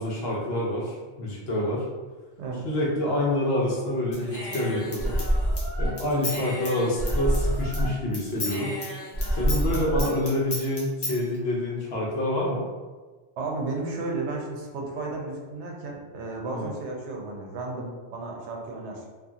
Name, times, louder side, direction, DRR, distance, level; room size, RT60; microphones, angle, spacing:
voice 1, 0.0-1.8 2.7-5.1 5.8-8.7 9.4-12.7 16.5-16.7, left 1 dB, 65° left, -3 dB, 0.9 m, -27 dB
voice 2, 2.4-2.7 13.4-19.0, right 3 dB, 80° right, 0 dB, 0.9 m, -33 dB
Human voice / Scissors, 4.1-7.9 8.1-11.2, equal, 30° left, 0.5 m, -28 dB
2.7 x 2.4 x 2.4 m, 1.3 s
omnidirectional pair, 1.2 m